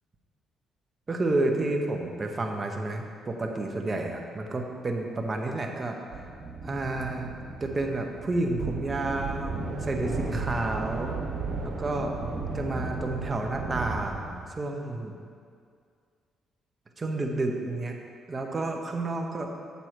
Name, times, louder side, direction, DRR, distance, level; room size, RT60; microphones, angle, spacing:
voice 1, 1.1-6.3 6.6-7.3 7.6-11.2 11.6-12.1 12.5-15.1 17.0-18.0 18.3-19.5, right 2 dB, 30° right, 2 dB, 1.0 m, -30 dB
sound 1, 6.1-14.5, right 3 dB, 75° right, 1.8 m, -34 dB
8.0 x 6.9 x 4.5 m, 2.2 s
cardioid pair, 90°, 0 cm